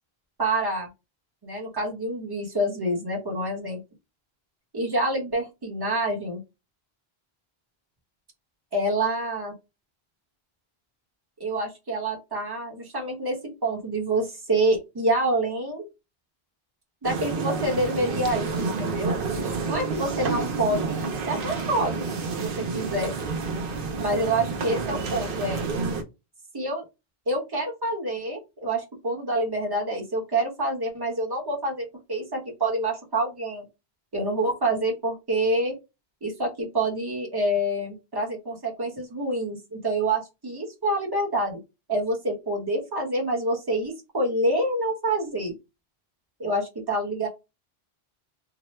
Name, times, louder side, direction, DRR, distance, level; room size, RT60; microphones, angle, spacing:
voice 1, 0.4-0.9 1.4-3.8 4.7-6.4 8.7-9.5 11.4-15.9 17.0-19.2 19.6-22.0 22.4-23.1 24.0-25.7 26.5-26.8 27.3-33.7 34.1-35.7 36.2-41.6 41.9-45.5 46.4-47.3, right 1 dB, 25° right, -1 dB, 0.9 m, -27 dB
sound 1, 17.0-26.0, right 4 dB, 65° right, 0.8 m, -29 dB
2.9 x 2.0 x 3.1 m, 0.25 s
omnidirectional pair, 1.0 m